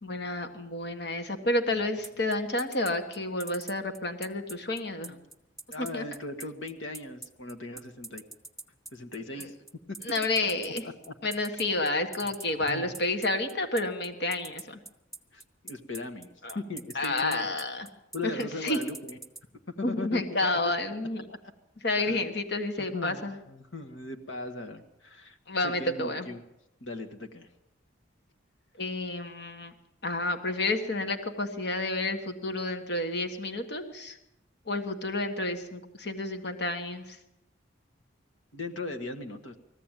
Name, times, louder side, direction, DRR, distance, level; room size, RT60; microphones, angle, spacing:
voice 1, 0.0-5.2 5.9-6.0 9.4-9.5 10.0-10.8 11.2-14.8 16.4-16.6 16.9-17.9 18.2-18.8 19.8-21.2 21.8-23.4 25.5-26.3 28.8-29.7 30.0-34.2 34.7-37.2, left 2 dB, 55° left, 7 dB, 1.5 m, -30 dB
sound 1, 2.0-19.4, right 2 dB, ahead, 0.9 m, -42 dB
voice 2, 5.7-8.2 8.9-9.5 10.4-10.5 10.8-11.1 12.7-12.9 15.3-17.4 18.1-19.2 19.8-20.4 20.6-20.7 21.3-21.4 22.0-22.2 22.8-23.2 23.5-25.4 25.6-26.4 26.8-27.5 38.5-39.6, left 2 dB, 75° left, 7 dB, 1.6 m, -38 dB
20.5 x 14.5 x 9.1 m, 0.89 s
head